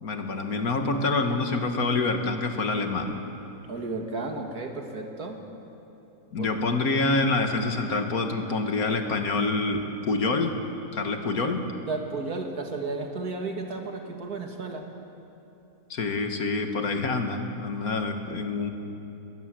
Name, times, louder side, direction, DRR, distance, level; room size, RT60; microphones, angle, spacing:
voice 1, 0.0-3.2 6.3-10.6 10.9-11.6 15.9-18.7, left 3 dB, 75° left, 5 dB, 2.1 m, -26 dB
voice 2, 3.7-5.4 6.4-6.8 11.9-14.9, right 3 dB, 85° right, 3 dB, 2.5 m, -33 dB
21.0 x 19.5 x 7.7 m, 2.8 s
omnidirectional pair, 1.6 m